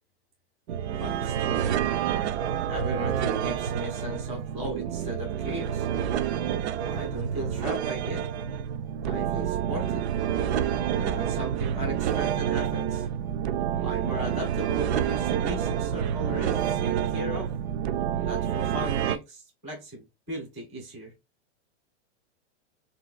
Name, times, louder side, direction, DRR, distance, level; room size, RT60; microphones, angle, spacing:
sound 1, 0.7-19.2, right 9 dB, 65° right, 0.5 m, -28 dB
voice 1, 1.0-1.6 2.7-5.9 6.9-8.2 9.0-10.0 10.9-13.1 13.8-17.5 18.3-21.1, equal, 5° right, 0.3 m, -37 dB
3.4 x 2.8 x 2.4 m
supercardioid pair, 170°, 35 cm